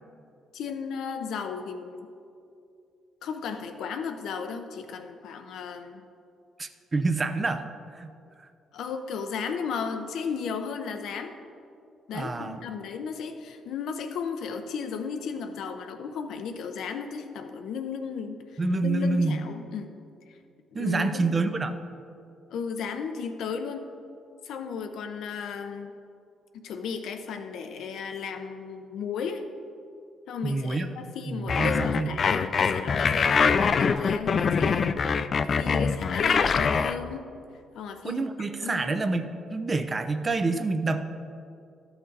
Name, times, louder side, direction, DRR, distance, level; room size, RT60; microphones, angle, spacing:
voice 1, 0.5-2.1 3.2-6.1 8.7-11.3 12.1-19.9 20.3-20.4 20.7-21.4 22.5-23.9 24.4-25.9 26.5-29.4 30.3-34.9 35.5-37.3 37.7-38.2 38.6-39.0, left 6 dB, 75° left, 7 dB, 0.7 m, -35 dB
voice 2, 6.6-7.7 7.9-8.1 12.1-12.6 18.6-19.4 20.7-21.7 30.4-30.9 31.3-32.1 38.0-41.0, right 3 dB, 30° right, 9 dB, 0.5 m, -27 dB
sound 1, 31.5-36.9, left 5 dB, 45° left, 0.3 m, -23 dB
12.5 x 5.9 x 4.0 m, 2.5 s
cardioid pair, 100°, 0 cm